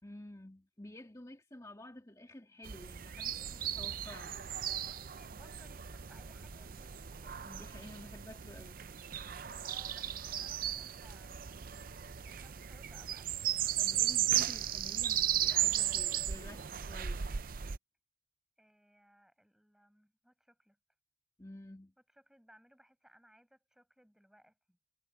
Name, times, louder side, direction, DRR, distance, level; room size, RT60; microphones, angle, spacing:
voice 1, 0.0-4.4 7.4-8.9 13.8-17.3 21.4-21.9, left 1 dB, 20° left, 2.2 m, -51 dB
sound 1, 2.6-17.8, right 11 dB, 50° right, 0.6 m, -36 dB
voice 2, 3.1-3.9 4.8-7.4 9.6-13.5 18.6-20.8 22.1-24.8, equal, 5° right, 6.2 m, -64 dB
head